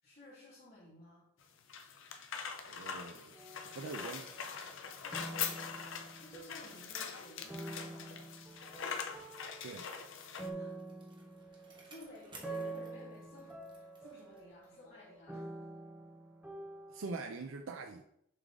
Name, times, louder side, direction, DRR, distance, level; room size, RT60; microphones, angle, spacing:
voice 1, 0.0-1.3 5.0-5.4 6.2-8.2 10.5-10.8 11.4-15.6, left 2 dB, 50° left, -10 dB, 2.5 m, -55 dB
sound 1, 1.4-10.5, left 7 dB, 65° left, 0.6 m, -43 dB
voice 2, 2.7-3.4 3.6-4.3 9.6-9.9 16.9-18.0, right 3 dB, 70° right, 3 dB, 0.5 m, -43 dB
sound 2, 3.3-4.8 5.1-6.9 7.5-17.3, right 2 dB, 10° right, 0.8 m, -47 dB
Bicycle, 10.5-14.9 15.3-15.4, right 3 dB, 25° right, 1.1 m, -59 dB
6.7 x 3.7 x 3.9 m, 0.73 s
head